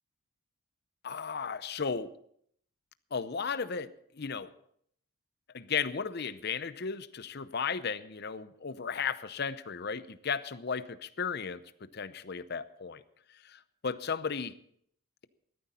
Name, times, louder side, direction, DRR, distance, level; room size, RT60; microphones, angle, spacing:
voice 1, 1.0-2.1 3.1-4.5 5.5-13.0 13.4-14.5, left 6 dB, 50° left, 14 dB, 0.7 m, -35 dB
15.5 x 13.0 x 4.3 m, 0.68 s
head